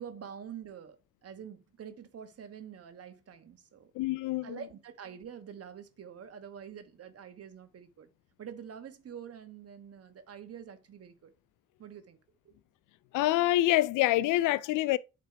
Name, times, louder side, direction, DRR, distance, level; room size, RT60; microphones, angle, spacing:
voice 1, 0.0-3.9 4.4-8.1 8.4-11.3 11.8-12.2 12.4-12.5, right 8 dB, 50° right, 1.4 m, -46 dB
voice 2, 3.9-4.6 13.1-15.0, left 15 dB, 90° left, 0.5 m, -26 dB
8.6 x 3.4 x 4.6 m
cardioid pair, 90°, 30 cm